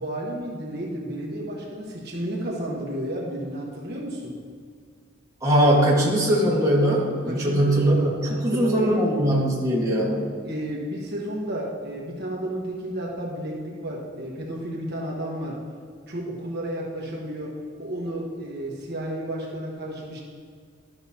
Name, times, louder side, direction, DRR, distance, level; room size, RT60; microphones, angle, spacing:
voice 1, 0.0-4.3 7.3-8.9 10.4-15.6 16.1-17.5 17.8-20.2, right 1 dB, 55° right, -2 dB, 1.2 m, -32 dB
voice 2, 5.4-10.2, equal, 15° right, -5 dB, 1.4 m, -21 dB
12.5 x 5.9 x 2.8 m, 2.1 s
head